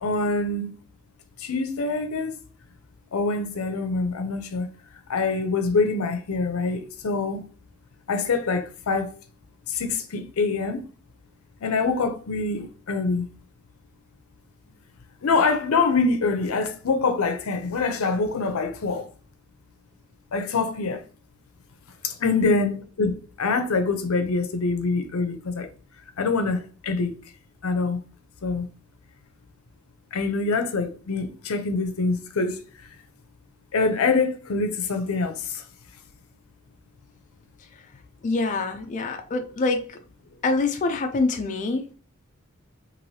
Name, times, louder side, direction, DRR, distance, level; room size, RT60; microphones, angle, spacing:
voice 1, 0.0-0.7 1.4-2.3 3.1-4.7 5.1-7.4 8.1-9.1 9.7-10.8 11.6-13.3 15.2-19.1 20.3-21.0 22.0-25.7 26.2-27.1 27.6-28.0 28.4-28.7 30.1-32.9 33.7-35.6, left 4 dB, 90° left, 0.5 m, -25 dB
voice 2, 38.2-40.0 40.4-41.9, left 3 dB, 35° left, 0.3 m, -25 dB
3.1 x 2.6 x 2.7 m
head